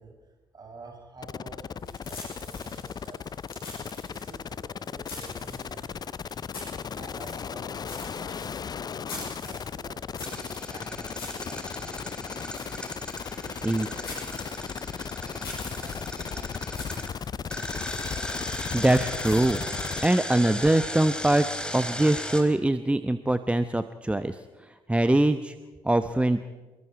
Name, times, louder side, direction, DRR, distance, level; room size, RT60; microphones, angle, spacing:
voice 1, 0.0-6.4 6.7-12.6 13.4-17.7, right 3 dB, 35° right, 2 dB, 7.1 m, -50 dB
sound 1, 1.2-20.1, left 7 dB, 35° left, 0.5 m, -36 dB
sound 2, 1.8-19.4, left 2 dB, 85° left, 6.3 m, -45 dB
Engine, 10.2-17.1 17.5-22.4, left 1 dB, 5° left, 3.9 m, -37 dB
voice 2, 18.7-19.6 20.0-21.5 21.7-25.5 25.8-26.4, right 1 dB, 10° right, 11 dB, 0.9 m, -23 dB
25.5 x 22.5 x 4.7 m, 1.3 s
figure-of-eight pair, 45°, 12 cm